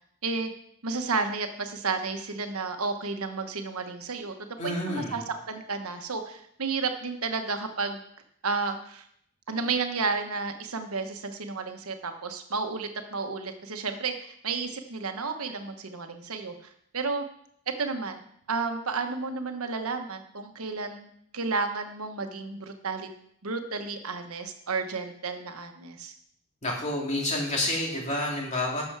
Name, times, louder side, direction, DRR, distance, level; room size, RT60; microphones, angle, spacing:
voice 1, 0.8-8.0 8.4-9.0 9.5-16.5 16.9-17.2 17.8-18.2 18.5-21.1 21.3-23.1 23.4-26.1, right 4 dB, 85° right, 6 dB, 1.2 m, -32 dB
voice 2, 4.6-5.3 26.6-28.8, left 1 dB, 30° left, -1 dB, 2.5 m, -29 dB
11.5 x 6.9 x 4.7 m, 0.71 s
head